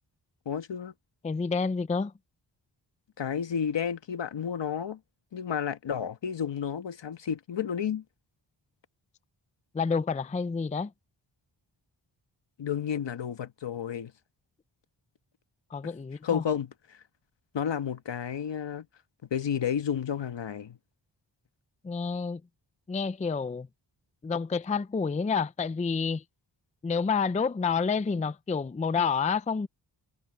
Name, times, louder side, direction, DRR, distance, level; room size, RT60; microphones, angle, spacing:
voice 1, 0.4-0.9 3.2-5.0 5.3-8.0 12.6-14.1 16.2-17.0 17.5-18.9 19.3-20.8, left 8 dB, 70° left, 1.4 m, -31 dB
voice 2, 1.2-2.1 9.7-10.9 15.7-16.4 21.8-22.4 22.9-23.7 24.2-26.2 26.8-29.7, left 5 dB, 15° left, 0.4 m, -29 dB
wide cardioid pair, 140°, 45 cm